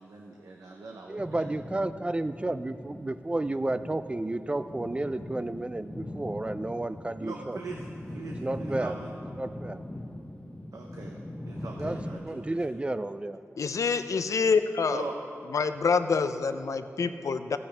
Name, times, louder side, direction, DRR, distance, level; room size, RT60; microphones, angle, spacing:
voice 1, 0.0-1.2 7.2-9.1 10.7-11.2 11.5-12.6 14.9-15.2, right 3 dB, 90° right, 1 dB, 0.7 m, -41 dB
voice 2, 1.1-7.6 8.4-9.0 9.3-9.8 11.8-13.4, right 2 dB, 20° right, 12 dB, 0.3 m, -32 dB
sound 1, 1.2-12.2, left 1 dB, 25° left, 0.8 m, -41 dB
voice 3, 13.6-15.0 15.5-17.6, left 5 dB, 80° left, 10 dB, 0.4 m, -26 dB
14.5 x 8.6 x 3.3 m, 2.7 s
wide cardioid pair, 70°, 5 cm